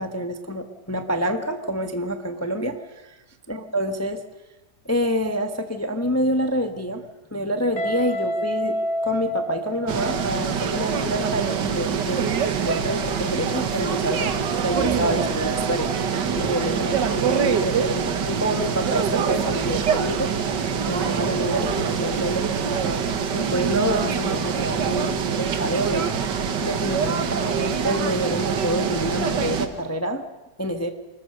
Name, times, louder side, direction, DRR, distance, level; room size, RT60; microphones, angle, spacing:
voice 1, 0.0-3.2 3.5-4.2 4.8-12.3 12.6-23.0 23.3-30.2 30.6-30.9, equal, 10° left, 6 dB, 0.9 m, -27 dB
Guitar, 7.8-10.6, equal, 60° left, 4.2 m, -28 dB
sound 1, 9.9-29.7, right 6 dB, 75° right, 1.9 m, -25 dB
24.5 x 20.5 x 6.6 m, 1.1 s
omnidirectional pair, 1.9 m